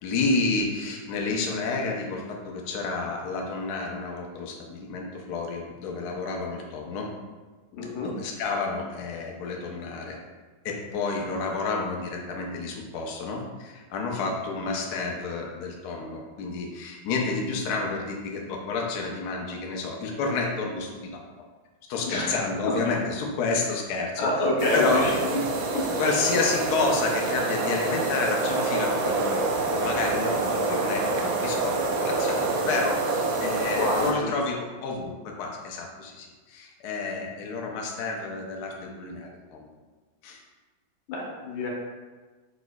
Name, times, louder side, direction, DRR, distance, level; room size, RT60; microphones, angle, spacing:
voice 1, 0.0-7.1 8.0-10.2 10.6-21.2 21.9-24.3 24.7-25.1 25.4-25.5 26.0-39.7 40.2-40.4, left 3 dB, 70° left, 0 dB, 1.1 m, -30 dB
voice 2, 7.7-8.1 22.0-22.8 24.2-25.4 25.7-25.9 33.8-34.2 41.1-41.7, left 2 dB, 85° left, -3 dB, 1.7 m, -27 dB
sound 1, 24.6-34.1, right 3 dB, 80° right, 0.7 m, -27 dB
4.6 x 4.3 x 2.2 m, 1.3 s
omnidirectional pair, 2.1 m